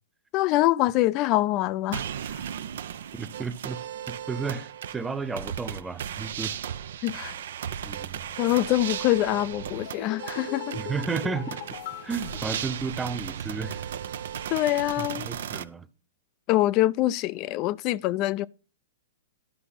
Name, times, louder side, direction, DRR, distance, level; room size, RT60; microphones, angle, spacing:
voice 1, 0.3-2.0 7.0-7.4 8.4-10.8 14.5-15.3 16.5-18.5, left 16 dB, 40° left, 0.4 m, -24 dB
sound 1, 1.9-15.6, right 9 dB, 65° right, 0.6 m, -36 dB
voice 2, 3.1-3.8 4.1-6.6 7.8-8.3 10.7-11.6 12.0-13.9 15.0-15.9, right 4 dB, 10° right, 0.7 m, -33 dB
sound 2, 9.9-13.3 13.6-13.7, left 12 dB, 55° left, 1.0 m, -41 dB
11.5 x 5.2 x 5.8 m
hypercardioid pair, 125°, 0 cm